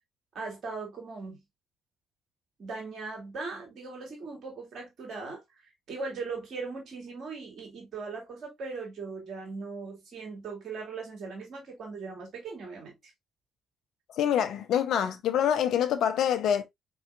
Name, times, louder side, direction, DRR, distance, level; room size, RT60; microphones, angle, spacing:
voice 1, 0.3-1.4 2.6-12.9, right 4 dB, 55° right, 2.3 m, -39 dB
voice 2, 14.2-16.6, left 9 dB, 65° left, 0.6 m, -26 dB
4.2 x 3.8 x 2.5 m
hypercardioid pair, 45°, 0 cm